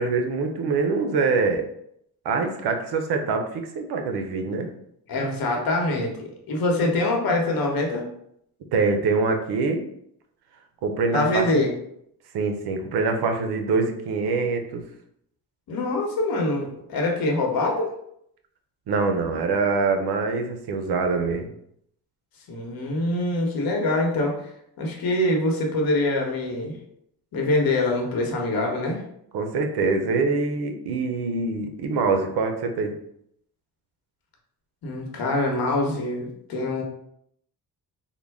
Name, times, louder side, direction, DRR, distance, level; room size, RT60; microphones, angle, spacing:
voice 1, 0.0-1.7 2.2-4.7 8.7-9.8 10.8-11.7 12.3-14.8 18.9-21.5 29.3-32.9, right 4 dB, 80° right, 5 dB, 0.6 m, -24 dB
voice 2, 5.1-8.0 11.1-11.7 15.7-17.9 22.5-24.3 24.8-26.7 27.3-29.0 34.8-36.8, left 2 dB, 65° left, 0 dB, 1.0 m, -24 dB
3.7 x 2.1 x 3.5 m, 0.73 s
cardioid pair, 115°, 38 cm